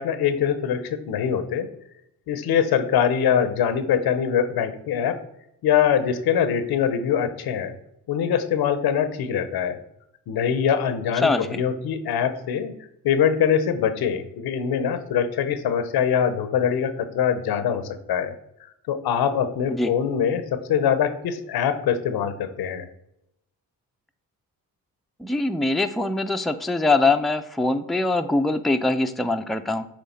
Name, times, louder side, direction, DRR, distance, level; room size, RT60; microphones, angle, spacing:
voice 1, 0.0-1.7 2.3-5.2 5.6-7.7 8.1-9.8 10.3-12.7 13.0-18.3 18.9-22.8, left 8 dB, 80° left, 10 dB, 0.8 m, -23 dB
voice 2, 11.2-11.6 19.7-19.9 25.2-29.9, left 2 dB, ahead, 7 dB, 0.5 m, -23 dB
7.4 x 3.1 x 4.2 m, 0.81 s
supercardioid pair, 55°, 37 cm